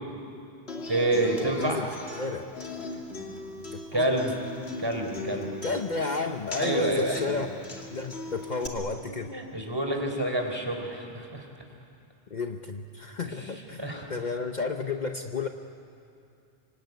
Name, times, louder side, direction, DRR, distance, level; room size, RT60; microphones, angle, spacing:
Human voice / Acoustic guitar, 0.7-8.7, left 2 dB, 85° left, 2.7 m, -39 dB
voice 1, 0.9-1.8 3.9-4.3 4.8-5.5 6.5-7.2 9.0-11.5 13.4-14.1, right 1 dB, 25° right, 2 dB, 3.9 m, -28 dB
voice 2, 2.1-2.4 3.7-4.1 5.6-7.5 7.9-9.4 12.3-15.5, left 4 dB, 45° left, 5 dB, 1.0 m, -32 dB
25.5 x 23.5 x 9.4 m, 2.5 s
omnidirectional pair, 1.0 m